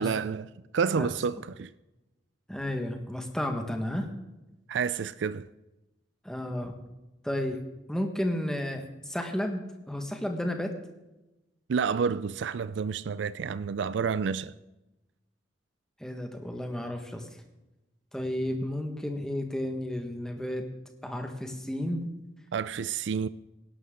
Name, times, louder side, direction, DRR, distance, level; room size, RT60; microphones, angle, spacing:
voice 1, 0.0-1.7 4.7-5.5 11.7-14.5 22.5-23.3, right 6 dB, 75° right, 0.4 m, -29 dB
voice 2, 2.5-4.1 6.2-6.7 7.2-7.6 7.9-9.6 9.9-10.7 16.0-17.3 18.1-20.7 21.0-22.1, left 1 dB, 5° left, 1.5 m, -32 dB
18.5 x 11.5 x 3.8 m
head